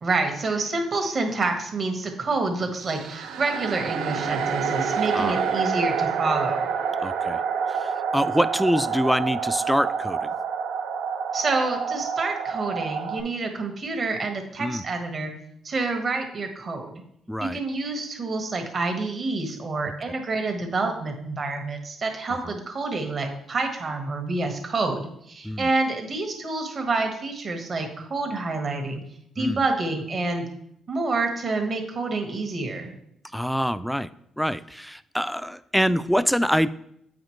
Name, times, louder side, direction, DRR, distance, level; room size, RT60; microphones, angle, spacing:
voice 1, 0.0-6.7 11.3-15.3 15.6-16.9 17.4-29.0 29.4-30.5 30.9-32.9, right 3 dB, 45° right, 4 dB, 1.4 m, -28 dB
sound 1, 2.7-13.2, right 6 dB, 85° right, 0.7 m, -28 dB
voice 2, 7.0-7.4 7.7-10.3 14.6-14.8 17.3-17.6 22.4-22.5 25.4-25.7 29.4-29.6 33.3-34.1 34.4-36.7, equal, ahead, 15 dB, 0.3 m, -25 dB
8.4 x 5.0 x 3.1 m, 0.73 s
cardioid pair, 90°, 0 cm